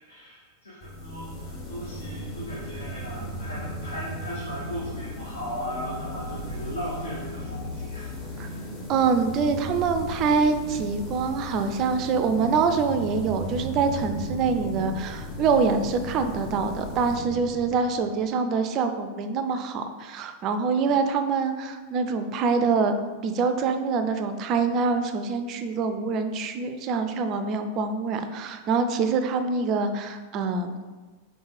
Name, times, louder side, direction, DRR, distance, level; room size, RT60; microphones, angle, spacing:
voice 1, 0.1-8.7, equal, 75° left, -5 dB, 0.8 m, -37 dB
sound 1, 0.8-18.3, equal, 40° left, 1.2 m, -36 dB
voice 2, 8.9-22.9 23.2-30.7, right 5 dB, 35° right, 8 dB, 0.3 m, -25 dB
3.9 x 3.3 x 3.2 m, 1.4 s
figure-of-eight pair, 90°, 0 cm